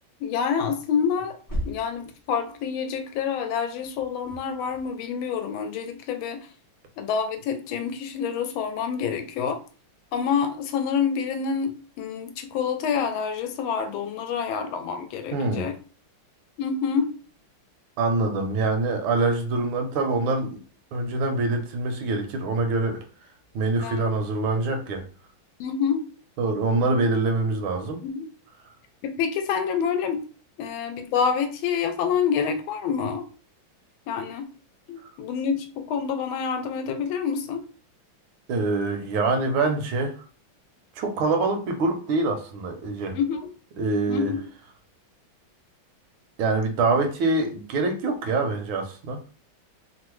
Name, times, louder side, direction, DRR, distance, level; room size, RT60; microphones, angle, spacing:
voice 1, 0.2-1.4 1.7-6.5 7.0-9.6 10.1-15.8 16.6-17.1 23.8-24.0 25.6-26.0 28.0-28.3 29.0-30.2 30.6-33.2 34.1-34.5 34.9-37.6 43.1-43.5 44.1-44.4, left 6 dB, 85° left, 7 dB, 1.4 m, -27 dB
sound 1, 0.9-2.9 3.8-5.0, equal, 30° left, 0.3 m, -37 dB
voice 2, 15.3-15.7 18.0-20.6 20.9-23.0 23.5-25.0 26.4-28.0 38.5-40.1 41.0-43.2 43.8-44.3 46.4-49.2, right 3 dB, 80° right, 5 dB, 1.4 m, -25 dB
3.6 x 2.1 x 3.0 m, 0.38 s
omnidirectional pair, 2.2 m